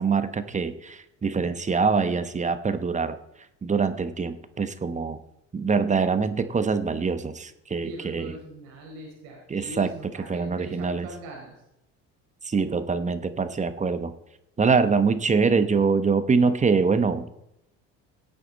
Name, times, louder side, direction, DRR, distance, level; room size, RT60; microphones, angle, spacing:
voice 1, 0.0-3.2 3.6-5.2 5.5-8.3 9.5-9.9 10.3-11.1 12.4-14.1 14.6-17.3, right 5 dB, 20° right, 11 dB, 1.0 m, -24 dB
voice 2, 7.8-11.5, right 2 dB, 80° right, -2 dB, 4.7 m, -41 dB
17.5 x 8.3 x 4.1 m, 0.83 s
supercardioid pair, 80°, 32 cm